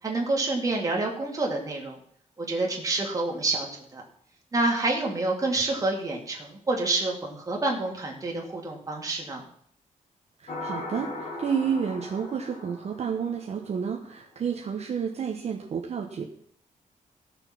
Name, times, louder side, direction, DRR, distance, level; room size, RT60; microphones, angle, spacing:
voice 1, 0.0-2.0 2.4-4.0 4.5-9.4, right 2 dB, 25° right, -1 dB, 2.5 m, -28 dB
voice 2, 10.4-16.2, right 7 dB, 50° right, 1 dB, 1.2 m, -30 dB
sound 1, 10.5-13.9, left 2 dB, 55° left, 2.4 m, -38 dB
15.5 x 6.8 x 6.0 m, 0.64 s
wide cardioid pair, 175°, 14 cm